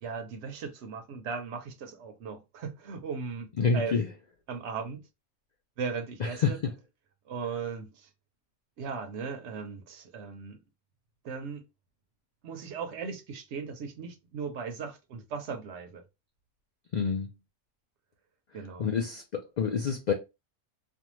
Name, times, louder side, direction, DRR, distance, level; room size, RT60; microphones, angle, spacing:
voice 1, 0.0-4.0 4.5-5.1 5.8-6.6 7.3-8.1 8.8-10.6 11.2-11.6 12.4-16.0 18.5-18.9, right 5 dB, 70° right, 0.8 m, -37 dB
voice 2, 3.6-4.1 6.2-6.5 16.9-17.3 18.8-20.1, left 5 dB, 70° left, 0.4 m, -27 dB
2.5 x 2.2 x 3.0 m
omnidirectional pair, 1.3 m